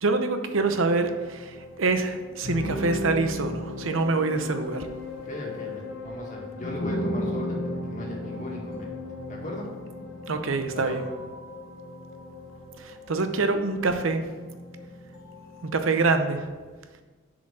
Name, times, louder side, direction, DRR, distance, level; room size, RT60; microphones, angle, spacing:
voice 1, 0.0-4.9 10.3-11.0 12.8-14.2 15.6-16.5, right 3 dB, 85° right, 8 dB, 0.7 m, -25 dB
sound 1, 0.6-16.4, left 1 dB, 85° left, 1.2 m, -36 dB
voice 2, 5.2-9.0 9.3-9.7 10.7-11.1, left 1 dB, 40° left, -2 dB, 1.8 m, -37 dB
7.0 x 5.1 x 6.1 m, 1.4 s
head